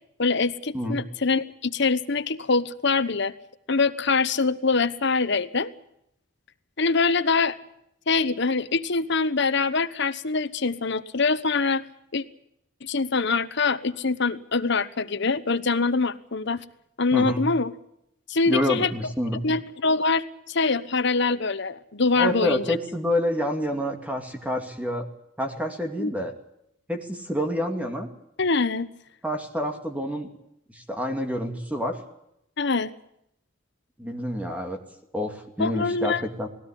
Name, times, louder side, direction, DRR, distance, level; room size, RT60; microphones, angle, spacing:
voice 1, 0.2-3.3 3.7-5.7 6.8-7.6 8.1-11.8 12.1-12.2 12.8-16.6 17.0-17.7 18.3-18.9 19.4-22.6 26.0-26.1 28.4-28.9 32.6-32.9 35.6-36.2, left 4 dB, 60° left, 12 dB, 1.1 m, -24 dB
voice 2, 17.1-17.5 18.5-19.5 22.2-25.1 25.4-26.3 26.9-28.1 29.2-30.3 30.7-32.0 34.0-34.8 35.1-36.5, left 1 dB, 5° right, 5 dB, 2.4 m, -28 dB
19.5 x 17.0 x 10.0 m, 0.79 s
head